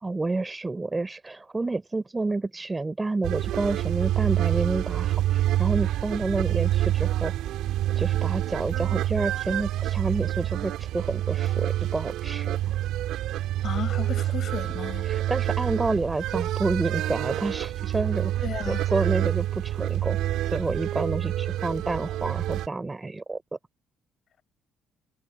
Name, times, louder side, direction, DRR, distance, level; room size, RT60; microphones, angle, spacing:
voice 1, 0.0-7.3 8.0-12.6 15.0-18.3 18.7-20.2 20.5-23.4, right 3 dB, 20° right, 3.9 m, -29 dB
sound 1, 3.2-22.7, right 13 dB, 80° right, 2.8 m, -27 dB
voice 2, 13.6-15.1 18.4-18.9, left 8 dB, 55° left, 4.9 m, -34 dB
cardioid pair, 90°, 0 cm